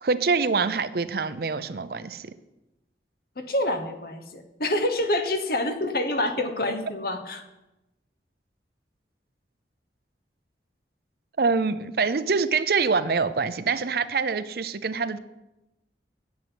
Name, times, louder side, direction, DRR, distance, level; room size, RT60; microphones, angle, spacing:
voice 1, 0.0-2.3 11.4-15.2, right 4 dB, 55° right, 14 dB, 0.6 m, -25 dB
voice 2, 3.4-7.4, left 1 dB, 55° left, 7 dB, 1.2 m, -27 dB
9.2 x 6.5 x 8.7 m, 0.97 s
head